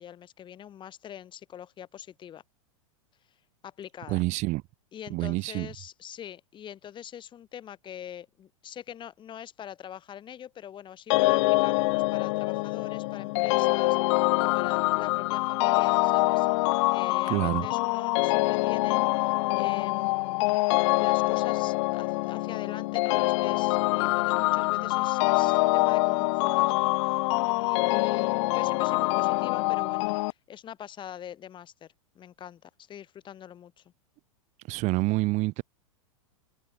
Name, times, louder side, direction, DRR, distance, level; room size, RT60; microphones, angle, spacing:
voice 1, 0.0-2.4 3.3-3.4 3.6-4.2 4.9-16.5 16.9-20.4 21.0-33.9, left 10 dB, 30° left, 6.8 m, -43 dB
voice 2, 4.1-4.6 5.1-5.7 17.3-17.7 34.7-35.6, right 22 dB, 45° right, 2.4 m, -27 dB
sound 1, 11.1-30.3, left 25 dB, 55° left, 1.8 m, -25 dB
hypercardioid pair, 115°, 17 cm